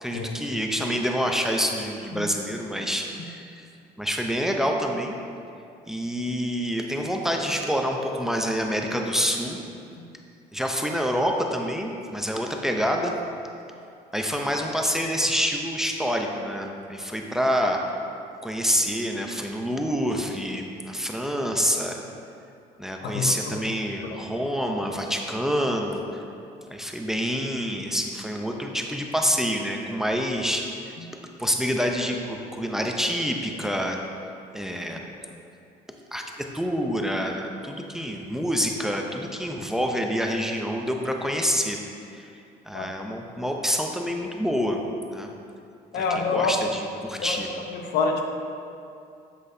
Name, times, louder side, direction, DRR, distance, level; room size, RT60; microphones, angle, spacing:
voice 1, 0.0-3.7 4.0-5.1 5.9-9.6 10.5-13.1 14.1-17.8 18.4-22.0 22.8-26.0 26.7-31.0 31.4-34.0 34.5-35.0 36.1-36.2 36.5-41.8 42.1-42.3 42.7-44.8 45.1-45.3 45.9-47.5, equal, 5° right, 2 dB, 0.6 m, -27 dB
voice 2, 23.0-23.6 24.1-24.2 31.0-31.1 42.7-42.9 45.9-46.8 47.2-47.4 47.7-48.2, left 4 dB, 80° left, 3 dB, 0.8 m, -27 dB
7.8 x 7.7 x 2.7 m, 2.5 s
cardioid pair, 110°, 17 cm